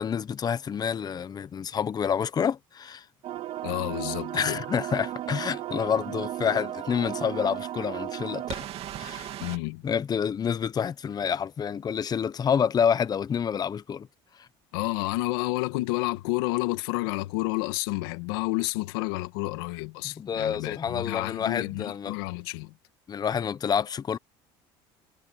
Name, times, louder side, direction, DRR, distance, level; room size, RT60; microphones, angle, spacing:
voice 1, 0.0-3.0 4.3-8.6 9.0-9.3 9.8-14.1 14.4-14.5 20.0-22.2 23.1-24.2, left 7 dB, 35° left, 1.0 m, -28 dB
sound 1, 3.2-9.6, right 12 dB, 60° right, 3.1 m, -35 dB
voice 2, 3.6-4.6 9.4-9.8 14.7-22.7, left 21 dB, 85° left, 1.9 m, -30 dB
supercardioid pair, 95°, 12 cm